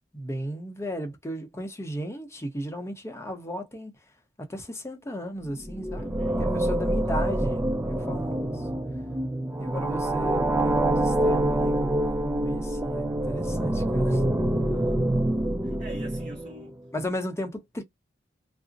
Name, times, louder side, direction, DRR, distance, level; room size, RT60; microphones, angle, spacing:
voice 1, 0.1-3.9 4.4-8.5 9.6-14.2 16.9-17.8, equal, 15° left, 0.7 m, -35 dB
sound 1, 5.5-16.7, right 1 dB, 10° right, 0.3 m, -26 dB
voice 2, 5.9-6.6 12.2-12.3 13.5-13.8 14.6-15.2 15.6-16.8, right 1 dB, 40° right, 0.7 m, -44 dB
2.5 x 2.0 x 3.8 m
head